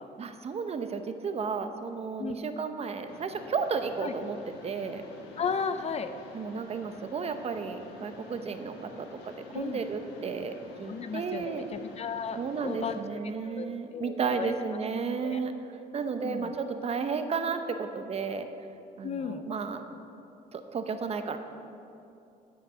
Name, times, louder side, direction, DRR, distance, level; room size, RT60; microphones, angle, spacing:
voice 1, 0.2-4.4 4.6-5.0 6.3-10.5 10.8-11.6 12.4-15.5 15.9-18.5 19.0-19.8 20.5-21.4, right 5 dB, 40° right, 8 dB, 0.8 m, -33 dB
Mechanisms, 3.1-13.0, left 2 dB, 80° left, 1.5 m, -49 dB
voice 2, 5.4-6.1 9.5-9.8 10.9-13.0 13.4-14.5 15.2-15.4 16.2-16.5 19.0-19.4, left 6 dB, 40° left, 10 dB, 0.6 m, -34 dB
12.5 x 6.6 x 5.6 m, 2.7 s
cardioid pair, 110°, 17 cm